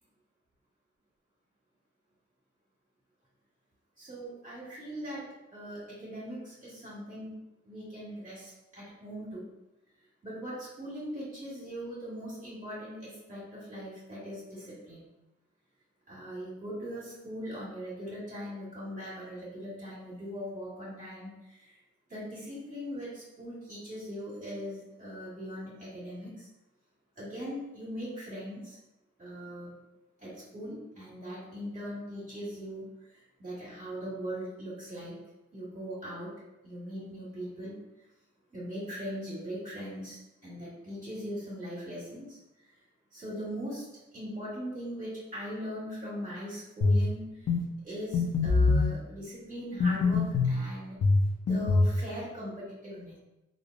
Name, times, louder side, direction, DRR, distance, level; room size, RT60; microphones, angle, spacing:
voice 1, 4.0-9.4 10.2-15.1 16.1-21.8 22.1-26.5 27.2-28.8 29.2-29.7 30.2-35.2 35.5-36.3 36.6-37.8 38.5-42.7 43.1-43.9 44.1-47.5 47.8-51.0 51.4-53.2, equal, 25° right, -10 dB, 1.4 m, -40 dB
sound 1, 46.8-47.1 47.5-47.6 48.1-48.9 49.8-50.6 51.0-52.0, left 3 dB, 55° left, 0.7 m, -23 dB
3.2 x 2.6 x 2.4 m, 1.0 s
cardioid pair, 70°, 30 cm